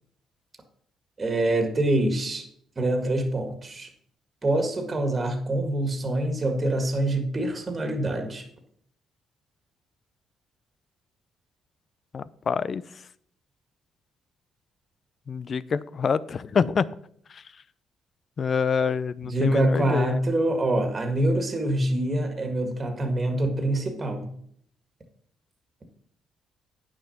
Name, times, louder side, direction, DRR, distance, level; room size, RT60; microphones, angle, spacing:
voice 1, 1.2-2.5 2.8-3.9 4.4-8.4 19.2-24.3, right 1 dB, 30° right, 5 dB, 1.8 m, -25 dB
voice 2, 12.1-12.8 15.3-16.8 17.3-17.4 18.4-20.2, left 6 dB, 45° left, 17 dB, 0.5 m, -26 dB
9.2 x 6.3 x 5.8 m, 0.65 s
cardioid pair, 90°, 0 cm